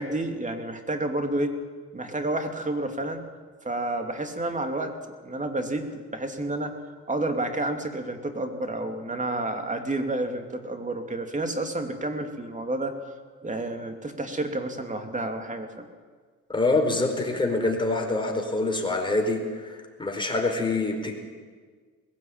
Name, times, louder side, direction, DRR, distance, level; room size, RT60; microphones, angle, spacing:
voice 1, 0.0-1.6 1.9-3.3 3.6-6.8 7.1-13.0 13.4-15.9, right 2 dB, 25° right, 5 dB, 2.8 m, -30 dB
voice 2, 16.5-21.1, left 2 dB, 15° left, 2 dB, 4.7 m, -26 dB
20.5 x 16.0 x 8.9 m, 1.5 s
cardioid pair, 90°, 30 cm